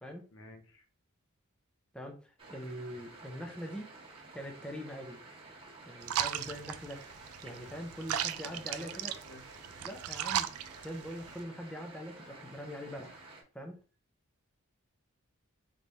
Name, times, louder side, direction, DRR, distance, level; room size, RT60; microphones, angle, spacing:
voice 1, 0.3-0.9 8.4-9.4, left 2 dB, 65° left, 3 dB, 1.0 m, -53 dB
voice 2, 1.9-3.9 4.3-5.2 5.8-9.1 9.8-10.5 10.8-13.2 13.5-13.8, equal, 5° left, 2 dB, 0.6 m, -43 dB
sound 1, 2.4-13.4, right 3 dB, 25° right, 1.2 m, -52 dB
sound 2, 6.0-11.4, right 10 dB, 80° right, 0.4 m, -37 dB
4.0 x 3.3 x 3.2 m, 0.37 s
head